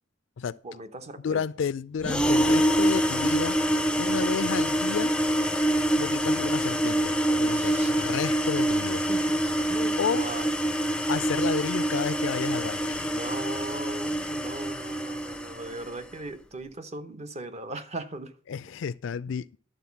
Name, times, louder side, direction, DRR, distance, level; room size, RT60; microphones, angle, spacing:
voice 1, 0.6-1.4 3.9-4.3 7.2-7.9 9.1-9.4 9.7-10.5 13.1-18.3, right 2 dB, 35° right, 0.8 m, -39 dB
voice 2, 1.2-3.6 4.0-5.1 6.0-9.0 10.0-10.2 11.1-13.1 18.5-19.6, left 6 dB, 75° left, 0.4 m, -31 dB
sound 1, 2.0-16.0, right 1 dB, 5° left, 0.4 m, -26 dB
11.5 x 3.9 x 7.0 m
head